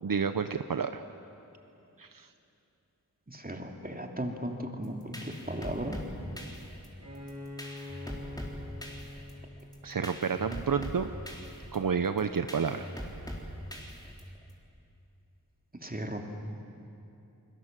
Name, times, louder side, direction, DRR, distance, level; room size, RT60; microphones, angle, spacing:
voice 1, 0.0-1.0 2.0-2.3 9.8-11.1 11.7-12.9, right 6 dB, 70° right, 9 dB, 0.8 m, -30 dB
voice 2, 3.4-5.1 5.5-6.0 15.8-16.3, right 1 dB, 25° right, 3 dB, 2.7 m, -36 dB
sound 1, 4.8-14.5, equal, 10° left, 3.9 m, -42 dB
Bowed string instrument, 7.0-10.6, left 1 dB, 50° right, 6.7 m, -45 dB
29.5 x 21.5 x 7.5 m, 2.8 s
wide cardioid pair, 45°, 35 cm